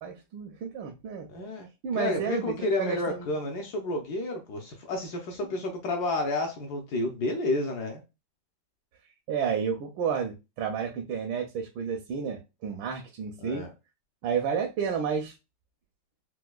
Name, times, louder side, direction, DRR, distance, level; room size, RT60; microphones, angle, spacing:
voice 1, 0.0-1.3 1.8-3.3 9.3-13.6 14.2-15.3, right 6 dB, 85° right, 1.4 m, -31 dB
voice 2, 1.3-1.7 1.9-8.0 13.4-13.7, left 2 dB, 65° left, 1.1 m, -30 dB
4.5 x 2.2 x 2.3 m
omnidirectional pair, 2.1 m